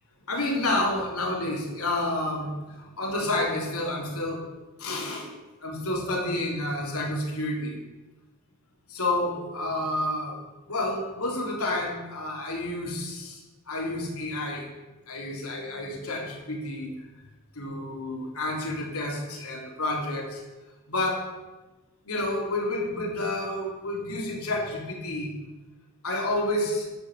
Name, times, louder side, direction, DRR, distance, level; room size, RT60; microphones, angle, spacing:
voice 1, 0.3-4.4 4.8-5.3 5.6-7.8 8.9-10.4 10.7-14.7 15.1-16.9 17.5-20.4 20.9-21.3 22.0-25.4 26.0-26.9, left 1 dB, 90° left, -1 dB, 3.5 m, -29 dB
11.5 x 7.5 x 8.2 m, 1.2 s
head